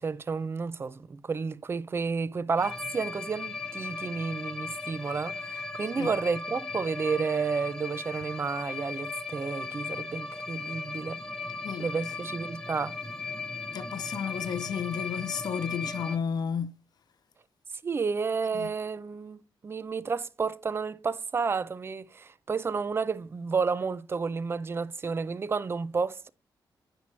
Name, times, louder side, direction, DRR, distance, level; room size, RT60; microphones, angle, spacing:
voice 1, 0.0-11.2 11.8-13.0 17.8-26.3, right 5 dB, 30° right, 0.4 m, -31 dB
sound 1, 2.6-16.2, left 4 dB, 5° left, 0.7 m, -37 dB
voice 2, 13.7-16.7 18.5-18.7, left 7 dB, 55° left, 0.5 m, -32 dB
8.8 x 5.9 x 3.1 m
cardioid pair, 120°, 8 cm